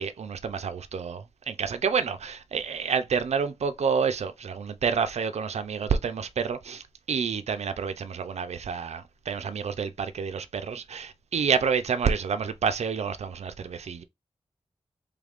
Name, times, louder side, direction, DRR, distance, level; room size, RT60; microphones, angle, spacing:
voice 1, 0.0-14.0, right 6 dB, 75° right, 0.4 m, -29 dB
3.4 x 2.4 x 3.4 m
wide cardioid pair, 65°, 11 cm